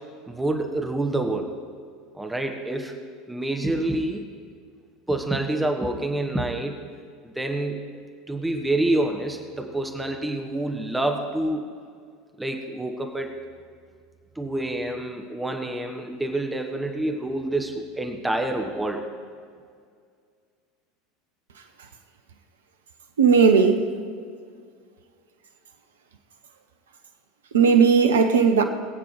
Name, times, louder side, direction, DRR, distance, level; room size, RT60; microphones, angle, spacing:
voice 1, 0.3-1.5 2.1-2.9 3.3-4.2 5.1-6.8 7.2-7.8 8.3-11.7 12.4-13.3 14.4-19.0, right 1 dB, 10° right, 1.2 m, -27 dB
voice 2, 23.2-23.9 27.5-28.6, right 6 dB, 70° right, 0.9 m, -17 dB
23.0 x 8.5 x 3.3 m
figure-of-eight pair, 75°, 0 cm